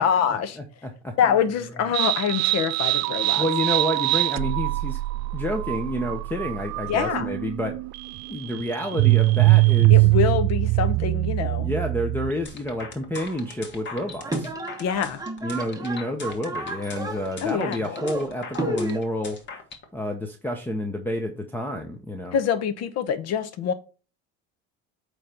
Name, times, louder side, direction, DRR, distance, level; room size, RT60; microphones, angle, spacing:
voice 1, 0.0-0.6 1.2-3.4 6.9-7.3 9.9-11.7 14.8-15.2 17.4-17.9 22.3-23.7, left 8 dB, 55° left, 1.1 m, -25 dB
voice 2, 0.6-1.2 3.4-5.0 5.3-7.8 8.3-10.0 11.6-14.5 15.4-19.4 19.9-22.4, left 1 dB, 5° left, 0.9 m, -29 dB
sound 1, 1.9-12.5, right 22 dB, 60° right, 0.4 m, -22 dB
sound 2, 12.5-19.8, left 4 dB, 35° left, 1.8 m, -40 dB
sound 3, 13.4-19.0, right 2 dB, 10° right, 1.2 m, -32 dB
8.7 x 3.4 x 4.4 m
supercardioid pair, 120°, 31 cm